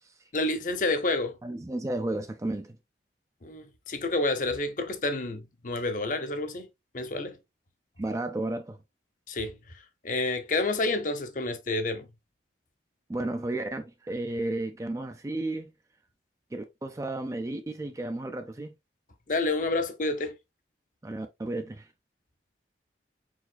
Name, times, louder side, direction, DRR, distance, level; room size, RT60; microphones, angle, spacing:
voice 1, 0.3-1.4 3.4-6.7 6.9-7.4 9.3-9.5 10.0-12.1 19.3-20.4, left 2 dB, 45° left, 0.7 m, -29 dB
voice 2, 1.4-2.8 8.0-8.8 13.1-15.7 16.5-18.7 21.0-21.9, right 2 dB, 15° right, 0.4 m, -33 dB
4.7 x 4.1 x 2.2 m
head